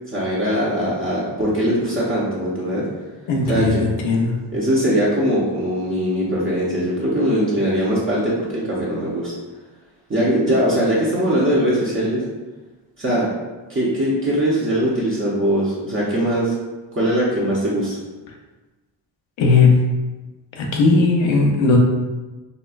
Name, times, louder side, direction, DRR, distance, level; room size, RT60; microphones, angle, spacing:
voice 1, 0.1-2.8 3.5-3.9 4.5-9.3 10.1-12.2 13.0-13.3 13.7-16.5 16.9-18.0, equal, 25° right, -7 dB, 0.8 m, -21 dB
voice 2, 3.3-4.3 19.4-19.7 20.6-21.8, left 4 dB, 80° left, 0 dB, 0.7 m, -17 dB
4.1 x 2.3 x 2.4 m, 1.2 s
cardioid pair, 85°, 45 cm